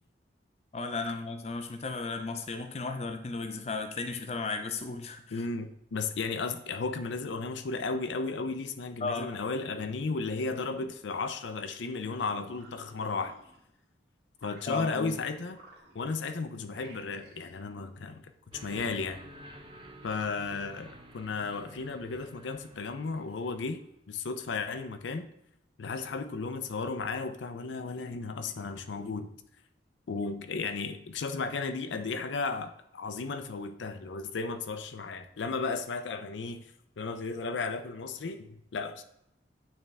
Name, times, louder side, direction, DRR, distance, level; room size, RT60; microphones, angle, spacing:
voice 1, 0.7-5.5 9.0-9.3 14.7-15.2, left 3 dB, 35° left, 7 dB, 0.5 m, -35 dB
voice 2, 5.3-13.3 14.4-15.6 15.9-19.2 20.0-23.8 24.1-25.3 25.8-29.3 30.1-36.6 37.0-39.0, left 4 dB, 85° left, 8 dB, 0.5 m, -34 dB
sound 1, 12.4-13.9 14.3-15.2 15.5-16.3 16.7-17.6, right 2 dB, 65° right, 1.7 m, -57 dB
sound 2, 18.5-23.9, right 1 dB, 25° right, 0.6 m, -51 dB
8.9 x 3.3 x 3.4 m, 0.78 s
head